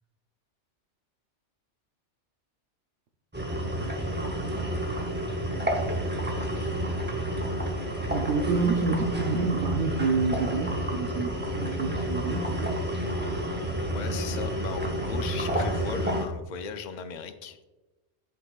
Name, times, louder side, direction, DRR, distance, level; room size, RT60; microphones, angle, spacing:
sound 1, 3.3-16.3, right 1 dB, 15° right, 0.4 m, -30 dB
voice 1, 8.1-12.8, right 4 dB, 85° right, 1 dB, 1.0 m, -28 dB
voice 2, 13.9-17.6, left 6 dB, 60° left, 9 dB, 0.5 m, -37 dB
11.5 x 3.9 x 2.3 m, 1.1 s
omnidirectional pair, 1.2 m